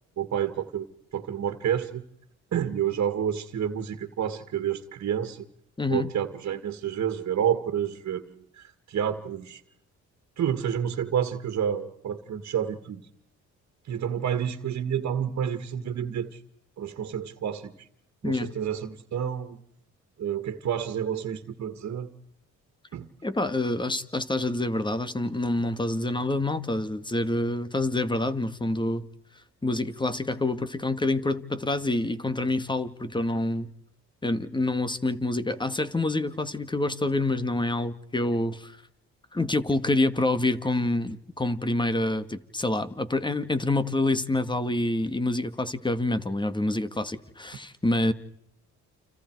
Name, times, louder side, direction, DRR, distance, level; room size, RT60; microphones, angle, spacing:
voice 1, 0.2-0.9 1.1-2.0 2.5-5.5 5.9-9.6 10.4-13.0 13.9-16.4 16.8-17.7 18.2-19.6 20.2-22.1 22.9-23.1, right 9 dB, 60° right, 8 dB, 2.0 m, -29 dB
voice 2, 5.8-6.1 18.2-18.5 23.2-29.1 29.6-33.7 34.2-38.8 39.3-48.1, left 2 dB, 15° left, 12 dB, 1.9 m, -27 dB
30.0 x 28.0 x 4.8 m, 0.74 s
cardioid pair, 90°, 30 cm